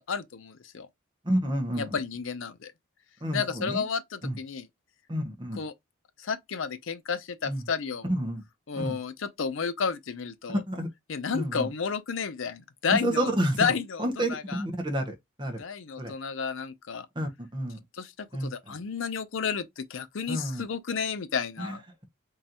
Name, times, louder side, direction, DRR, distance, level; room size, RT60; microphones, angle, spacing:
voice 1, 0.1-0.9 1.7-2.7 3.3-4.7 5.6-5.7 6.2-8.1 8.7-10.6 11.1-13.3 13.6-14.6 15.6-17.1 17.9-21.8, left 6 dB, 85° left, 0.5 m, -31 dB
voice 2, 1.2-1.9 3.2-3.8 4.2-4.4 5.1-5.6 7.4-7.6 8.1-8.4 8.7-9.0 10.5-10.9 11.3-11.7 12.9-13.7 14.0-15.6 16.0-16.1 17.1-17.8 18.3-18.7 20.3-20.6 21.6-21.8, right 1 dB, 25° right, 0.9 m, -30 dB
3.8 x 3.0 x 2.8 m
head